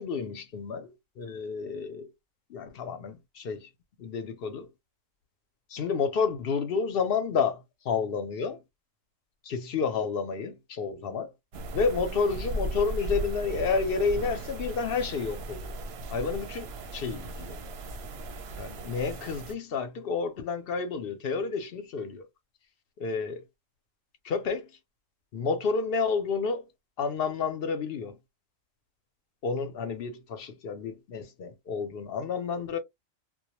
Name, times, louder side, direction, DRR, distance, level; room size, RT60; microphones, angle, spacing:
voice 1, 0.0-2.1 2.5-3.7 4.0-4.7 5.7-8.6 9.5-11.3 11.7-15.7 16.1-17.6 18.6-22.2 23.0-23.4 24.2-24.7 25.3-26.7 27.0-28.2 29.4-32.8, left 5 dB, 60° left, 0.6 m, -30 dB
sound 1, 11.5-19.5, right 2 dB, 60° right, 0.7 m, -37 dB
2.2 x 2.1 x 2.9 m
omnidirectional pair, 1.4 m